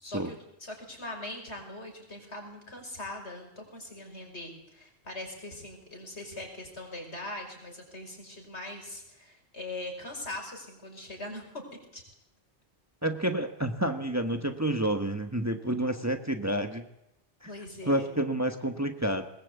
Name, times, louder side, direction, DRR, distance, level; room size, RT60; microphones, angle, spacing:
voice 1, 0.0-11.6 11.9-12.1 17.4-18.1, left 1 dB, 80° left, 2 dB, 5.6 m, -41 dB
voice 2, 13.0-16.8 17.4-17.5 17.9-19.3, right 1 dB, 15° right, 7 dB, 1.3 m, -29 dB
21.0 x 20.0 x 8.3 m, 0.84 s
omnidirectional pair, 1.1 m